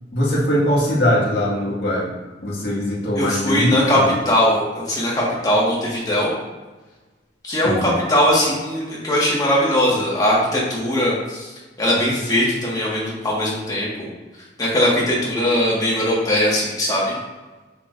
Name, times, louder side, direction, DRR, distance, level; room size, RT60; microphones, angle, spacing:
voice 1, 0.1-2.1 2.4-4.1 7.6-7.9, equal, 65° left, -5 dB, 1.8 m, -21 dB
voice 2, 3.1-4.0 4.2-6.3 7.4-14.1 14.6-17.1, left 1 dB, 20° left, -5 dB, 1.6 m, -20 dB
6.7 x 5.6 x 2.5 m, 1.2 s
head